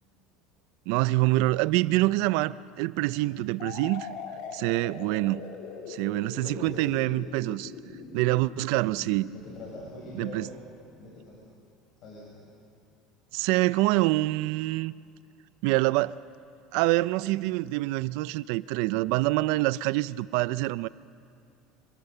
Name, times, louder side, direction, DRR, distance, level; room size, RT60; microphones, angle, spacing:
voice 1, 0.9-4.1 4.5-5.4 5.9-7.7 8.1-9.3 10.1-10.5 13.3-14.9 15.6-16.2 16.7-20.9, right 19 dB, 70° right, 18 dB, 0.4 m, -26 dB
sound 1, 3.6-11.3, left 5 dB, 70° left, 2.8 m, -42 dB
voice 2, 6.4-7.0 9.3-10.5 10.9-11.4 12.0-12.4, left 2 dB, 45° left, -5 dB, 6.0 m, -44 dB
26.0 x 19.0 x 6.8 m, 2.3 s
supercardioid pair, 130°, 0 cm